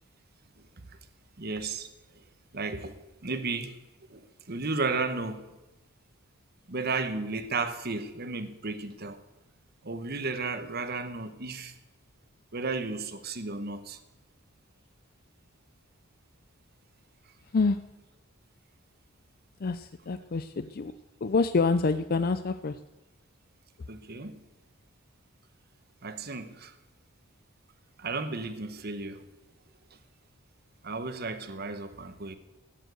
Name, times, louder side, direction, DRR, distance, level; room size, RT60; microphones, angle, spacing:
voice 1, 1.4-1.9 2.5-3.8 4.1-5.4 6.7-9.2 9.8-11.7 12.5-14.0 23.9-24.4 26.0-26.8 28.0-29.2 30.8-32.4, right 3 dB, 50° right, 10 dB, 1.2 m, -34 dB
voice 2, 19.6-20.9 21.2-22.8, left 4 dB, 45° left, 11 dB, 0.5 m, -27 dB
14.0 x 9.2 x 7.9 m, 1.0 s
head